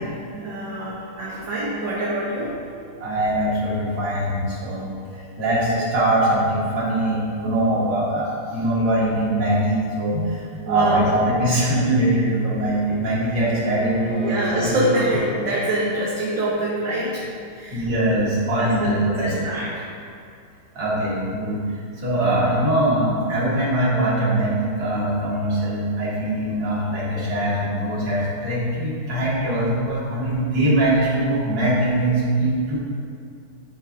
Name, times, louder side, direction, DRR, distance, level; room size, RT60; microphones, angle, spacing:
voice 1, 0.0-2.5 10.6-11.1 14.2-17.2 17.5-17.8 18.6-19.9, right 1 dB, 60° right, -7 dB, 1.6 m, -25 dB
voice 2, 3.0-4.9 5.4-14.8 17.7-19.4 20.8-21.6 22.0-32.8, right 1 dB, 45° right, -7 dB, 2.0 m, -22 dB
Bowed string instrument, 12.2-15.4, left 1 dB, 5° left, 0.9 m, -35 dB
11.0 x 5.0 x 2.4 m, 2.3 s
omnidirectional pair, 2.4 m